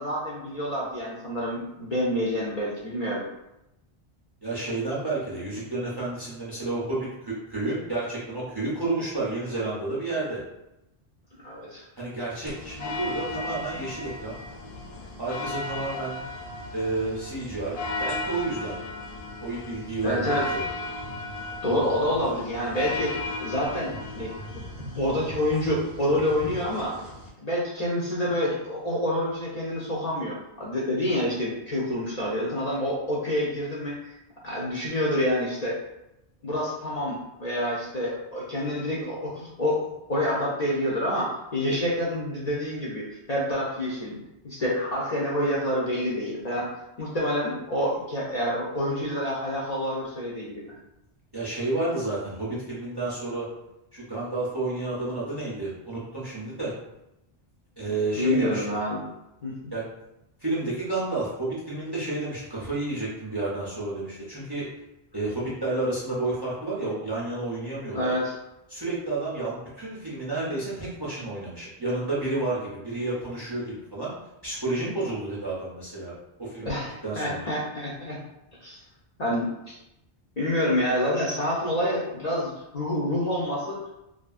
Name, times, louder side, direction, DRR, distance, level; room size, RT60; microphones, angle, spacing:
voice 1, 0.0-3.3 11.4-11.8 20.0-20.5 21.6-24.6 25.0-27.0 27.4-34.1 34.4-35.8 36.4-39.8 40.1-44.2 44.4-50.7 58.2-59.1 59.4-59.5 67.9-68.3 76.6-78.2 78.6-78.8 79.2-79.8 80.4-83.9, left 1 dB, 50° left, -5 dB, 0.6 m, -28 dB
voice 2, 4.4-10.4 12.0-14.4 15.2-16.2 16.7-18.8 19.4-20.6 51.3-53.5 53.9-56.7 57.8-58.6 59.7-59.9 60.4-64.7 65.1-68.1 68.7-74.1 74.4-76.1 76.4-76.8 77.0-77.5, right 2 dB, 30° right, -7 dB, 0.5 m, -30 dB
sound 1, 12.5-27.3, left 2 dB, 75° left, 0.9 m, -35 dB
2.7 x 2.5 x 2.4 m, 0.88 s
omnidirectional pair, 1.1 m